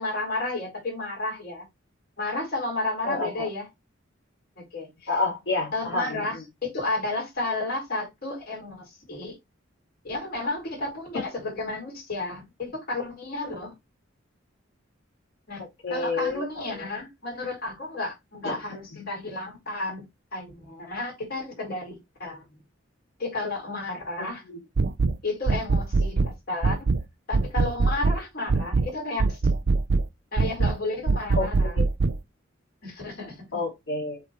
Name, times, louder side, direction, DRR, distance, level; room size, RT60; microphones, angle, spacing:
voice 1, 0.0-1.7 2.2-3.7 4.6-5.1 5.7-9.3 10.0-13.7 15.5-15.6 15.9-22.4 23.2-24.4 25.2-26.9 27.3-29.5 30.3-31.8 32.8-33.5, left 2 dB, 55° left, 4.5 m, -32 dB
voice 2, 3.0-3.5 5.1-6.4 15.8-16.9 18.4-18.6 18.9-19.1 24.2-24.6 31.3-31.5 31.7-31.8 33.5-34.2, left 3 dB, 75° left, 3.1 m, -29 dB
sound 1, 24.8-25.2 25.5-26.3 26.6-27.0 27.3-28.2 28.5-28.9 29.2-30.1 30.4-30.8 31.1-32.2, right 3 dB, 55° right, 0.5 m, -22 dB
7.7 x 4.0 x 3.1 m
head